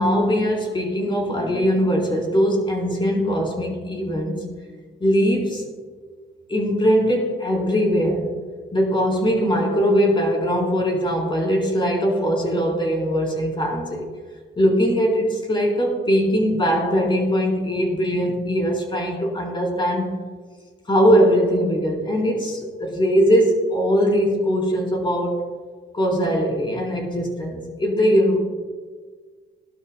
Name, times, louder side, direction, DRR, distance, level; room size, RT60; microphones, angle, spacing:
voice 1, 0.0-4.4 5.0-5.6 6.5-8.3 8.7-14.1 14.6-20.2 20.9-25.4 25.9-28.4, equal, 25° left, -1 dB, 4.1 m, -21 dB
18.5 x 12.0 x 2.3 m, 1.5 s
cardioid pair, 90°, 20 cm